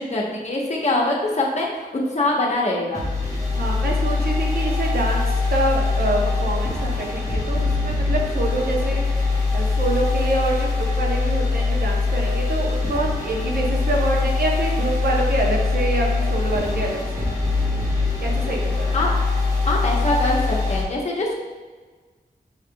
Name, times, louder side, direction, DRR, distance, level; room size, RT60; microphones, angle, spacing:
voice 1, 0.0-1.9 2.1-3.0 18.9-19.1 19.6-21.3, left 2 dB, 45° left, -3 dB, 1.0 m, -23 dB
sound 1, 2.9-20.8, left 3 dB, 20° right, 1.2 m, -22 dB
voice 2, 3.6-17.3 18.2-19.0, right 2 dB, 70° right, -1 dB, 0.8 m, -26 dB
6.3 x 3.4 x 2.3 m, 1.4 s
wide cardioid pair, 85°, 16 cm